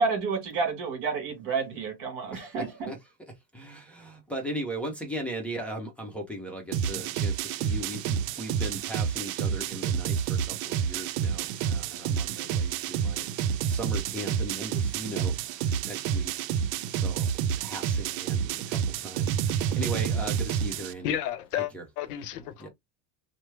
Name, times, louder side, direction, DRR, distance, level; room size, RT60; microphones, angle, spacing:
voice 1, 0.0-2.9, right 4 dB, 50° right, 1.6 m, -30 dB
voice 2, 2.3-3.0 3.5-13.3 13.7-15.3 15.8-16.3 16.9-21.1 21.7-21.8 22.6-22.7, right 1 dB, 5° left, 0.7 m, -38 dB
sound 1, 6.7-20.9, right 8 dB, 80° right, 0.6 m, -29 dB
voice 3, 21.0-21.7 22.0-22.7, left 10 dB, 85° left, 0.8 m, -31 dB
3.1 x 2.0 x 3.3 m
supercardioid pair, 145°, 45 cm